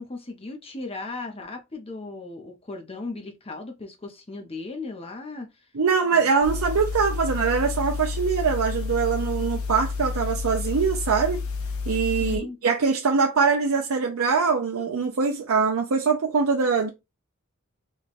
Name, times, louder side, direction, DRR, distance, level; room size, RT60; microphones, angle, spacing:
voice 1, 0.0-5.5 6.1-6.3 12.2-12.6, left 3 dB, 25° left, 0.7 m, -36 dB
voice 2, 5.7-11.4 11.9-16.9, right 5 dB, 70° right, 0.5 m, -23 dB
sound 1, 6.4-12.4, left 4 dB, 70° left, 0.8 m, -30 dB
3.2 x 2.3 x 4.0 m
head